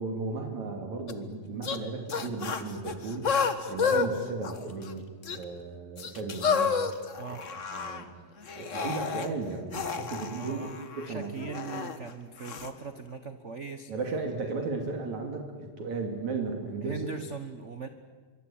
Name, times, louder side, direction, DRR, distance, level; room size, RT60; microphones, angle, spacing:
voice 1, 0.0-3.3 3.7-6.7 7.4-8.1 8.6-11.5 13.9-17.1, right 3 dB, 75° right, 4 dB, 3.9 m, -35 dB
sound 1, 1.1-1.2 1.6-1.8 2.1-4.1 4.4-4.9 5.2-5.4 6.0-8.0 8.4-9.3 9.7-12.0 12.4-12.7, left 6 dB, 45° left, 1.0 m, -31 dB
voice 2, 10.4-10.7 11.0-13.9 14.4-14.7 16.8-17.9, right 5 dB, 55° right, 8 dB, 0.8 m, -40 dB
24.5 x 24.5 x 8.7 m, 1.5 s
omnidirectional pair, 3.3 m